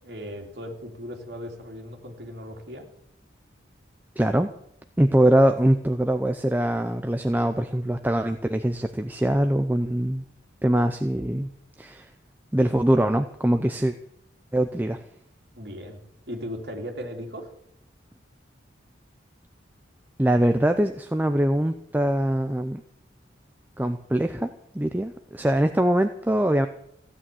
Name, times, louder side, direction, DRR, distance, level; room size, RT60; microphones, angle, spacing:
voice 1, 0.0-2.9 15.6-16.0 16.3-17.5, equal, 55° right, 2 dB, 3.1 m, -37 dB
voice 2, 4.2-4.5 5.0-10.2 10.6-11.5 11.8-12.1 12.5-13.9 14.5-15.0 20.2-22.8 23.8-24.5 24.7-26.7, right 1 dB, 10° right, 7 dB, 0.6 m, -23 dB
15.5 x 8.7 x 9.1 m, 0.73 s
head